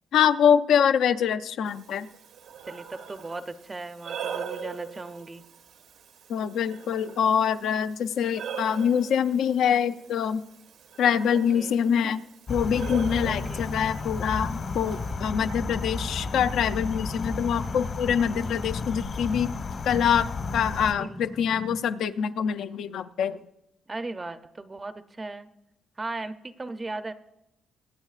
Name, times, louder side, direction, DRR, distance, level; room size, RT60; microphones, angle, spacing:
voice 1, 0.1-2.1 6.3-10.4 11.0-12.2 12.5-19.6 19.8-23.4, left 8 dB, 75° left, 11 dB, 0.5 m, -25 dB
Breathing, 1.7-15.1, right 8 dB, 80° right, 1.0 m, -42 dB
voice 2, 2.7-5.4 11.5-11.7 13.2-13.6 20.9-21.2 23.9-25.5 26.0-27.1, right 2 dB, 20° right, 11 dB, 0.5 m, -37 dB
sound 1, 12.5-20.9, left 4 dB, 50° left, 1.1 m, -33 dB
sound 2, 14.4-21.8, left 2 dB, 15° left, 0.6 m, -41 dB
22.5 x 8.7 x 2.4 m, 0.87 s
cardioid pair, 120°, 0 cm